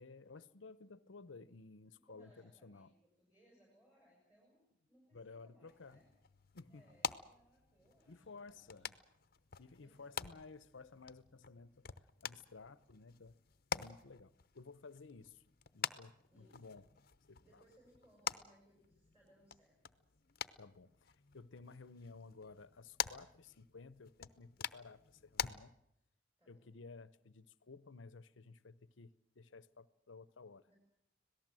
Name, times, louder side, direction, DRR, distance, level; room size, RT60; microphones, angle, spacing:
voice 1, 0.0-2.9 5.1-6.0 6.5-6.9 8.1-8.9 9.6-11.8 12.2-13.4 13.7-15.4 15.7-16.9 17.3-17.4 20.6-25.8 26.5-30.7, left 4 dB, 80° left, 0.8 m, -55 dB
voice 2, 1.9-6.1 6.7-8.8 9.8-10.4 16.3-16.8 17.4-19.8 26.4-26.7 30.7-30.8, equal, 10° right, 6.4 m, -69 dB
sound 1, 5.7-25.5, left 7 dB, 50° left, 0.8 m, -47 dB
26.0 x 18.0 x 7.7 m
head